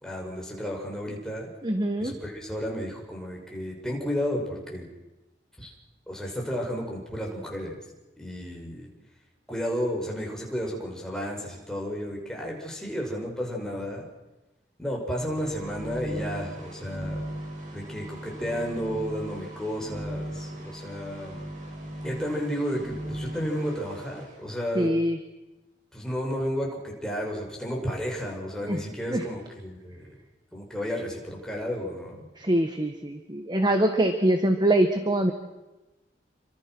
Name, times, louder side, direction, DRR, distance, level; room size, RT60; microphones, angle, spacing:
voice 1, 0.0-1.5 2.0-4.9 5.6-5.7 6.1-7.8 8.2-8.9 9.5-14.1 14.8-17.2 17.7-21.5 22.0-24.9 25.9-30.1 30.5-32.2, equal, 5° left, -1 dB, 5.9 m, -32 dB
voice 2, 1.6-2.1 24.7-25.2 28.6-28.8 29.1-29.2 32.4-35.3, right 1 dB, 25° right, 6 dB, 1.7 m, -24 dB
sound 1, 15.2-24.3, right 1 dB, 45° right, 7.4 m, -38 dB
28.5 x 24.5 x 6.3 m, 1.0 s
head